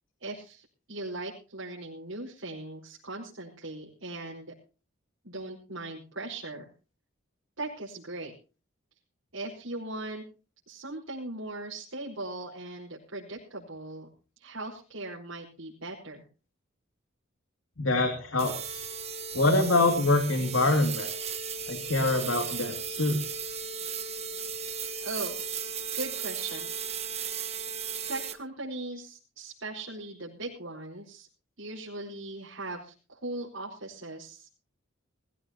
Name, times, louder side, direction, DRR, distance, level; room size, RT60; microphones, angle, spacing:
voice 1, 0.2-4.5 5.2-6.7 7.6-8.3 9.3-10.2 10.7-14.1 14.4-16.2 25.0-25.4 25.9-26.7 27.0-27.2 28.1-31.3 31.6-34.5, right 2 dB, 80° right, -4 dB, 4.9 m, -39 dB
voice 2, 17.8-18.9 19.3-21.1 21.7-23.2, left 2 dB, 80° left, 5 dB, 2.5 m, -25 dB
sound 1, 18.4-28.3, right 6 dB, 30° right, 1.4 m, -36 dB
21.0 x 16.0 x 2.9 m, 0.35 s
head